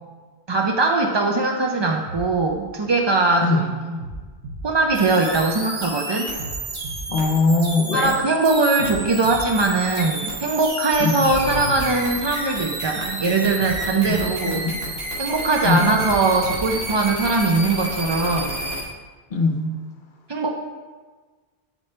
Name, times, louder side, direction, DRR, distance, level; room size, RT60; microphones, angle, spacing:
voice 1, 0.5-4.0 4.6-6.3 7.9-14.6 15.2-18.6 20.3-20.6, right 3 dB, 45° right, 1 dB, 0.3 m, -21 dB
sound 1, 2.1-3.4 4.0-5.7 6.4-8.2 8.8-10.6 11.2-13.0 13.6-15.3 16.0-17.4, right 1 dB, 90° right, 1.3 m, -38 dB
sound 2, 4.9-18.9, right 2 dB, 65° right, 1.4 m, -31 dB
voice 2, 7.1-8.1 11.0-11.3 14.1-14.2 14.5-14.7 15.6-15.9 19.3-19.8, left 3 dB, 55° left, 4 dB, 0.8 m, -21 dB
sound 3, 11.4-13.0, left 6 dB, 90° left, 0.9 m, -34 dB
7.9 x 4.5 x 4.3 m, 1.4 s
omnidirectional pair, 1.1 m